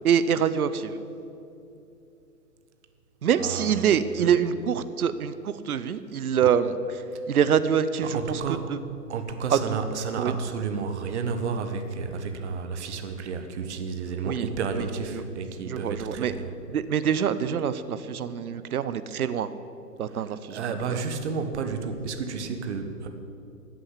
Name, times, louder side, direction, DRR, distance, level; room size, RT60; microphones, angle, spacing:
voice 1, 0.0-0.9 3.2-7.0 7.3-8.4 8.7-8.8 9.5-9.8 10.2-10.4 14.2-14.5 14.8-14.9 15.1-15.2 15.6-16.3 16.7-19.5 20.0-21.0, right 8 dB, 65° right, 13 dB, 0.8 m, -25 dB
voice 2, 3.4-3.9 4.2-4.3 8.0-8.7 9.1-16.5 20.1-20.2 20.5-23.1, right 5 dB, 45° right, 7 dB, 1.4 m, -31 dB
14.0 x 7.7 x 8.5 m, 2.7 s
figure-of-eight pair, 125°, 48 cm